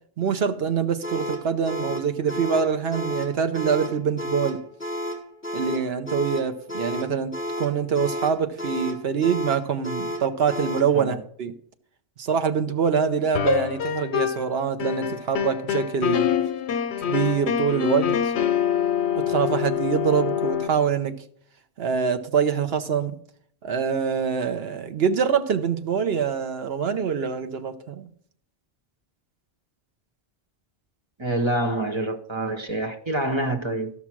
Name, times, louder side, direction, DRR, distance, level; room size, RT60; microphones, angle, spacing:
voice 1, 0.2-4.6 5.5-7.3 7.6-11.5 12.2-16.3 17.1-18.2 19.3-21.2 21.8-23.2 23.6-28.1, right 6 dB, 65° right, 1.0 m, -25 dB
sound 1, 1.0-10.9, equal, 10° left, 1.5 m, -32 dB
sound 2, 13.3-14.5 14.8-20.7, left 9 dB, 80° left, 0.9 m, -25 dB
voice 2, 31.2-33.9, right 1 dB, 25° right, 0.9 m, -26 dB
12.5 x 5.8 x 6.0 m
omnidirectional pair, 1.1 m